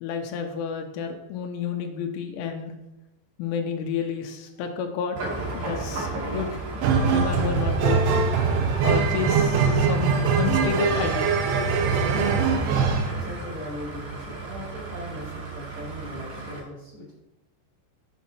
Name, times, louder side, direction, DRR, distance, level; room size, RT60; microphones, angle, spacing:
voice 1, 0.0-2.7 3.4-5.2 5.5-6.6 7.1-8.0 8.8-11.4, left 7 dB, 90° left, 4 dB, 3.1 m, -30 dB
sound 1, 5.2-16.6, right 2 dB, 55° right, 4.0 m, -34 dB
sound 2, 6.8-13.1, right 5 dB, 85° right, 2.2 m, -22 dB
voice 2, 13.0-17.1, left 1 dB, 30° right, -12 dB, 1.9 m, -39 dB
8.4 x 6.0 x 2.9 m, 0.93 s
omnidirectional pair, 5.4 m